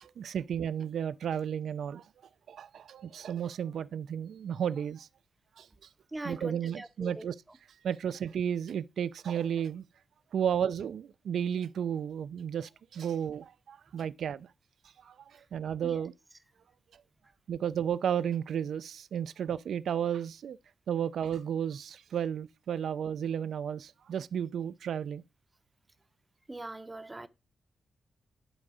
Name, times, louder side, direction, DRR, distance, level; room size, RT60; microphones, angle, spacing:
voice 1, 0.0-2.1 2.5-5.1 5.6-5.7 6.2-7.3 7.8-9.8 10.3-14.5 15.0-16.1 17.5-20.6 20.9-25.2, right 8 dB, 75° right, 0.4 m, -33 dB
voice 2, 6.1-7.3 15.8-16.0 26.5-27.3, right 2 dB, 15° right, 0.7 m, -41 dB
11.0 x 3.9 x 4.9 m
wide cardioid pair, 115°, 0 cm